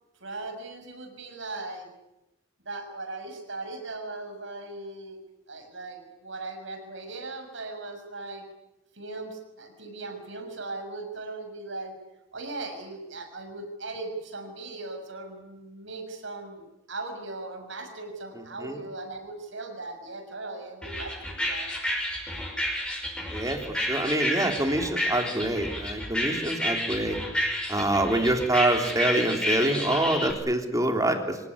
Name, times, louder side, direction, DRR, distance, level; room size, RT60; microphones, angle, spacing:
voice 1, 0.2-1.9 2.6-5.2 5.5-8.4 8.9-11.9 12.3-21.7, right 2 dB, 70° right, 6 dB, 6.2 m, -38 dB
voice 2, 18.3-18.8 23.3-27.2 27.7-31.4, right 1 dB, 15° right, 4 dB, 3.5 m, -26 dB
sound 1, 20.8-30.3, equal, 5° left, 5.3 m, -30 dB
25.5 x 19.0 x 9.9 m, 0.95 s
head